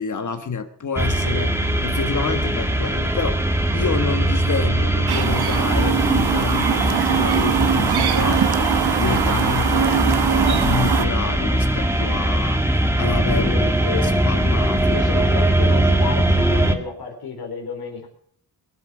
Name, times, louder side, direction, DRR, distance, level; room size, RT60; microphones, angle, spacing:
voice 1, 0.0-15.0, left 5 dB, 50° left, 8 dB, 1.3 m, -28 dB
sound 1, 1.0-16.7, right 1 dB, 5° right, 1.6 m, -21 dB
Chirp tweet, 5.1-11.1, right 8 dB, 80° right, 1.1 m, -22 dB
voice 2, 13.3-14.2 14.9-18.1, left 5 dB, 75° left, 3 dB, 3.9 m, -31 dB
22.0 x 9.4 x 6.0 m, 0.62 s
wide cardioid pair, 120°, 38 cm